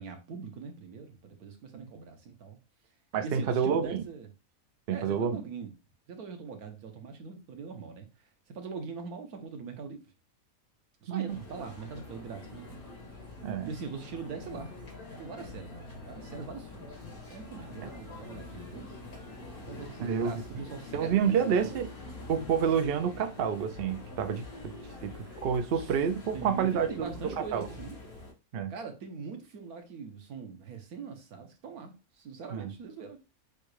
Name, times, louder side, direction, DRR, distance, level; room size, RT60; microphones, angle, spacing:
voice 1, 0.0-2.6 3.2-4.3 4.9-5.7 6.1-8.3 8.5-10.0 11.0-12.8 13.6-14.7 15.2-19.0 19.6-21.8 25.7-26.0 26.3-28.0 28.7-33.2, right 5 dB, 90° right, 1.5 m, -42 dB
voice 2, 3.1-4.0 4.9-5.4 11.1-11.4 13.4-13.7 17.8-17.9 20.0-20.3 20.9-21.9 22.3-24.7 25.0-27.7 28.5-28.7 32.5-32.7, right 7 dB, 55° right, 0.7 m, -29 dB
sound 1, 11.3-28.3, left 3 dB, 80° left, 2.4 m, -45 dB
6.8 x 2.3 x 3.2 m
omnidirectional pair, 1.5 m